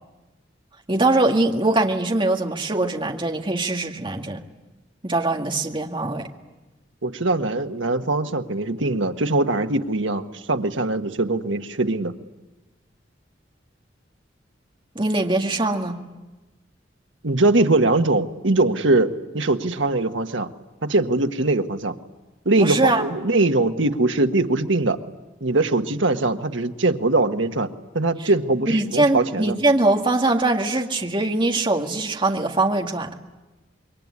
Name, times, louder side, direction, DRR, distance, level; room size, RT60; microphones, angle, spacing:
voice 1, 0.9-4.4 5.0-6.3 15.0-16.0 22.6-23.0 28.2-28.3 28.7-33.1, right 2 dB, 25° right, 3 dB, 2.1 m, -22 dB
voice 2, 7.0-12.1 17.2-20.5 20.8-21.9 22.4-25.0 25.4-27.7 27.9-29.5, right 2 dB, 90° right, 7 dB, 1.5 m, -21 dB
26.5 x 23.0 x 9.8 m, 1.1 s
head